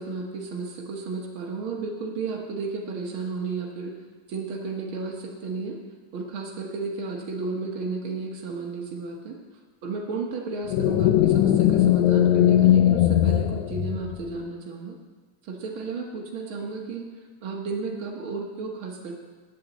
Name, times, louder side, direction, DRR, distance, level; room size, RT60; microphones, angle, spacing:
voice 1, 0.0-3.9 4.3-5.8 6.1-9.4 9.8-15.0 15.4-17.1 17.4-19.2, right 4 dB, 75° right, 0 dB, 1.2 m, -33 dB
sound 1, 10.7-14.4, left 12 dB, 80° left, 1.7 m, -19 dB
9.9 x 7.0 x 8.0 m, 1.4 s
omnidirectional pair, 3.9 m